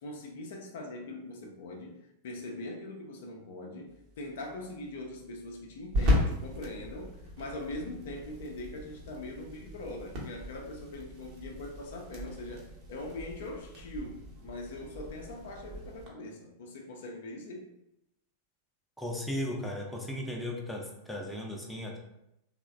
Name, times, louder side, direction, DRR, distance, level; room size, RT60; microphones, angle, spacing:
voice 1, 0.0-17.7, left 2 dB, 55° left, 1 dB, 0.4 m, -42 dB
sound 1, 3.9-16.1, left 1 dB, 40° right, 0.8 m, -36 dB
voice 2, 19.0-22.0, left 1 dB, 5° left, -1 dB, 0.5 m, -36 dB
3.0 x 2.0 x 2.4 m, 0.83 s
figure-of-eight pair, 90°, 0 cm